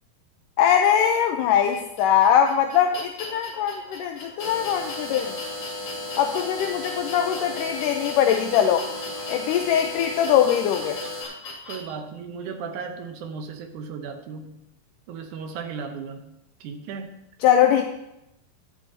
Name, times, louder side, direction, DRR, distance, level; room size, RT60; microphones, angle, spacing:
voice 1, 0.6-5.3 6.2-8.9 9.3-11.0 17.4-17.8, left 9 dB, 80° left, 4 dB, 2.0 m, -21 dB
sound 1, 1.7-11.8, left 3 dB, 45° left, 3.1 m, -39 dB
sound 2, 4.4-11.2, left 1 dB, 10° left, 1.8 m, -35 dB
voice 2, 11.7-14.6 15.1-16.3 16.6-17.2, right 5 dB, 75° right, 6 dB, 2.0 m, -35 dB
13.0 x 10.5 x 2.8 m, 0.84 s
omnidirectional pair, 4.2 m